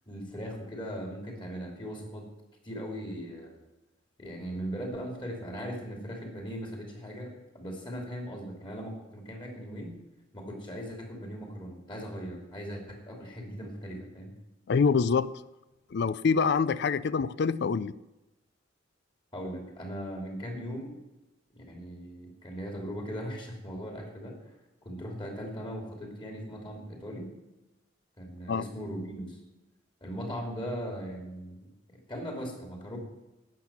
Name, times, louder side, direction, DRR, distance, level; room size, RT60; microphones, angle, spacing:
voice 1, 0.1-2.3 2.6-3.6 4.2-10.0 10.3-14.3 19.3-21.0 21.5-24.4 24.8-27.3 28.2-29.4 30.0-33.0, equal, 25° left, 2 dB, 3.0 m, -39 dB
voice 2, 14.7-15.3 15.9-17.9 28.5-28.6, left 5 dB, 60° left, 17 dB, 0.4 m, -25 dB
12.0 x 8.5 x 7.3 m, 1.0 s
head